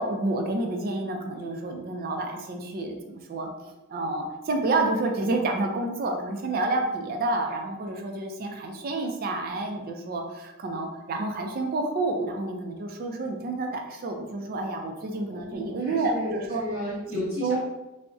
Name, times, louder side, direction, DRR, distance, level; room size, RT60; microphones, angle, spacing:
voice 1, 0.0-16.6 17.1-17.6, right 2 dB, 40° right, 3 dB, 0.3 m, -29 dB
voice 2, 15.3-17.6, left 1 dB, 5° right, -13 dB, 0.6 m, -34 dB
3.5 x 2.0 x 2.5 m, 0.99 s
head